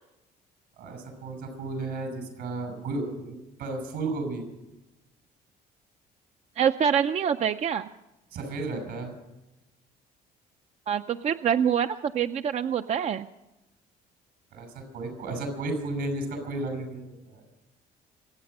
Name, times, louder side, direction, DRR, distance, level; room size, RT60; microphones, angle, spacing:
voice 1, 0.8-4.4 8.3-9.1 14.5-17.4, right 2 dB, 75° right, 6 dB, 6.0 m, -33 dB
voice 2, 6.6-7.9 10.9-13.3, right 8 dB, 40° right, 10 dB, 0.4 m, -25 dB
24.5 x 8.8 x 6.6 m, 0.96 s
cardioid pair, 110°, 17 cm